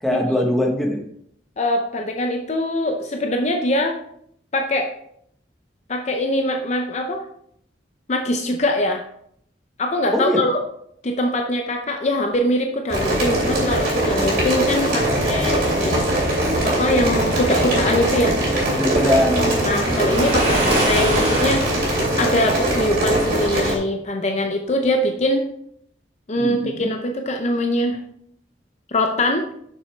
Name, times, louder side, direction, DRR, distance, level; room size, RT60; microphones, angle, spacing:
voice 1, 0.0-1.0 10.1-10.4 14.9-16.0 18.7-20.3 26.4-26.9, left 1 dB, ahead, 0 dB, 1.0 m, -23 dB
voice 2, 1.6-4.0 4.5-4.9 5.9-7.2 8.1-9.0 9.8-10.6 11.0-15.9 16.6-18.4 19.6-21.8 22.2-25.5 26.3-28.0 28.9-29.5, left 1 dB, 35° left, 4 dB, 0.5 m, -22 dB
sound 1, 12.9-23.8, right 1 dB, 50° right, 2.9 m, -21 dB
Waves surf, 19.9-22.0, right 1 dB, 30° right, 2.5 m, -23 dB
6.7 x 6.2 x 3.2 m, 0.70 s
head